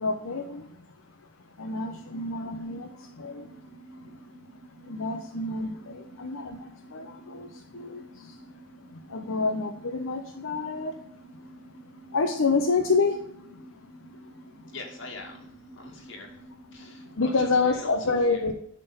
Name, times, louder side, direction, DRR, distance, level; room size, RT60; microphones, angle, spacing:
voice 1, 0.0-14.7 16.8-18.5, left 3 dB, 90° left, 4 dB, 0.8 m, -30 dB
sound 1, 1.9-17.5, right 1 dB, 25° left, 2.8 m, -50 dB
voice 2, 14.7-16.4 16.7-18.4, left 3 dB, 65° left, 0 dB, 2.3 m, -43 dB
10.5 x 3.7 x 5.5 m, 0.74 s
head